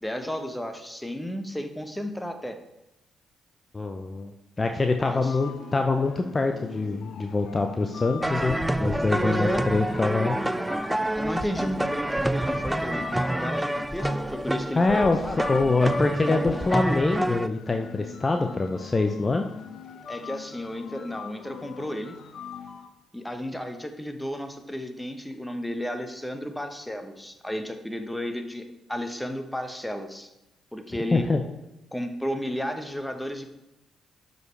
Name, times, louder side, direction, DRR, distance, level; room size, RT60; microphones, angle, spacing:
voice 1, 0.0-2.6 5.0-5.4 9.2-9.6 11.2-15.0 15.2-15.4 20.1-22.2 23.1-30.3 30.7-31.2 31.9-33.5, equal, 5° left, 7 dB, 1.1 m, -33 dB
voice 2, 3.7-10.4 14.7-15.2 15.5-19.4 31.1-31.4, left 3 dB, 30° left, 5 dB, 0.7 m, -25 dB
sound 1, 5.0-22.9, left 7 dB, 60° left, 0.8 m, -42 dB
sound 2, 8.2-17.5, right 1 dB, 10° right, 0.3 m, -28 dB
12.0 x 5.3 x 3.3 m, 0.94 s
figure-of-eight pair, 40°, 0 cm